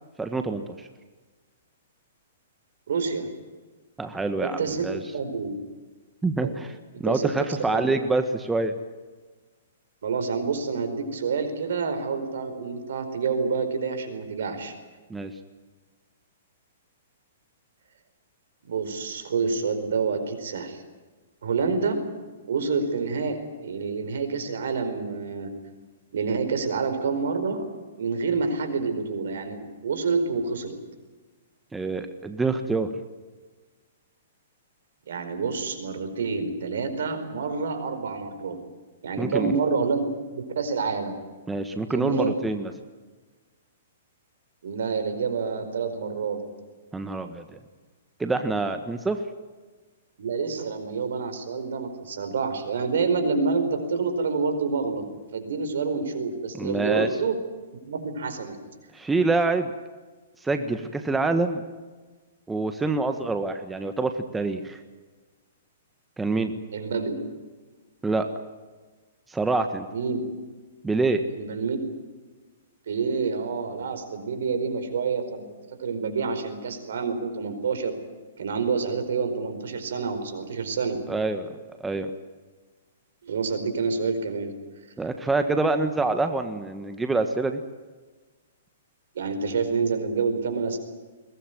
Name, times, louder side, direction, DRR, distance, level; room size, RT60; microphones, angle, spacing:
voice 1, 0.2-0.9 4.0-5.0 6.2-6.7 7.0-8.7 15.1-15.3 31.7-32.9 39.2-39.6 41.5-42.7 46.9-47.6 48.2-49.2 56.6-57.1 58.9-59.7 60.4-61.6 62.5-64.8 66.2-66.5 68.0-68.3 69.3-69.9 70.8-71.2 81.1-81.5 81.8-82.1 85.0-87.6, right 3 dB, 10° right, 7 dB, 1.5 m, -26 dB
voice 2, 2.9-3.3 4.4-5.6 6.4-6.5 7.0-7.3 7.7-7.9 10.0-14.7 18.6-20.8 21.4-22.0 22.5-25.5 26.1-27.7 28.0-30.8 35.1-38.6 39.0-40.0 40.3-41.1 41.9-42.3 44.6-46.4 50.2-55.0 55.3-57.4 57.8-58.6 66.7-67.2 69.9-70.2 71.3-71.8 72.9-75.4 75.8-77.9 78.4-81.0 83.2-84.5 89.1-90.8, right 5 dB, 70° right, 8 dB, 4.7 m, -28 dB
22.0 x 19.5 x 9.3 m, 1.3 s
hypercardioid pair, 120°, 0 cm